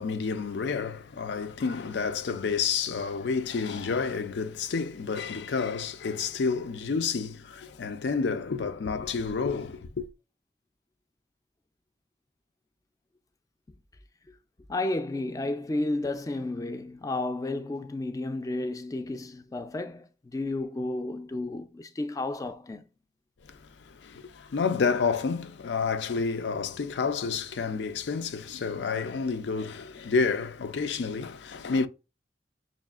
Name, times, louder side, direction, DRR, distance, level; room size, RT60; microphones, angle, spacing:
voice 1, 0.0-10.1 23.4-23.6 23.9-31.9, left 5 dB, 80° left, 0.4 m, -29 dB
voice 2, 14.7-22.9, left 2 dB, 20° left, 0.3 m, -32 dB
6.0 x 2.4 x 2.4 m
head